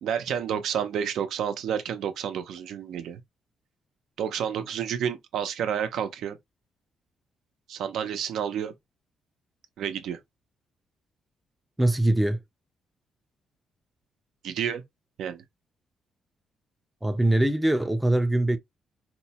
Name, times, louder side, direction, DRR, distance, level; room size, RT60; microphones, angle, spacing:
voice 1, 0.0-3.2 4.2-6.4 7.7-8.7 9.8-10.2 14.4-14.8 15.2-15.4, right 8 dB, 75° right, 0.6 m, -30 dB
voice 2, 11.8-12.4 17.0-18.6, right 1 dB, 5° right, 0.4 m, -22 dB
4.4 x 2.1 x 2.7 m
cardioid pair, 160°, 0 cm